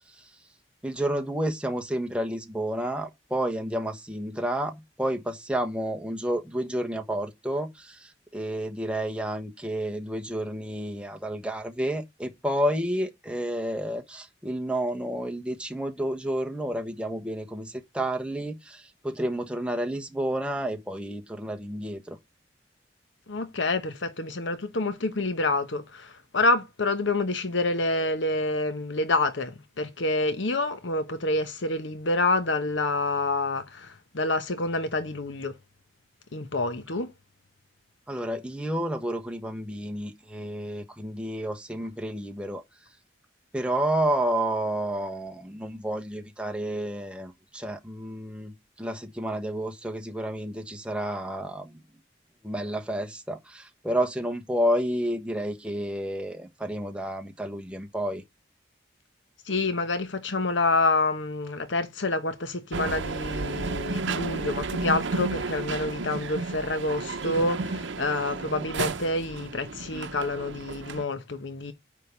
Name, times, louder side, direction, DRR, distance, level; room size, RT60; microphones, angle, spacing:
voice 1, 0.8-22.2 38.1-42.6 43.5-51.8 52.4-58.2, right 1 dB, 5° right, 1.1 m, -30 dB
voice 2, 23.3-35.5 36.3-37.1 59.5-71.7, left 2 dB, 85° left, 1.0 m, -27 dB
sound 1, 62.7-71.0, right 4 dB, 85° right, 0.7 m, -32 dB
9.5 x 3.7 x 7.0 m
head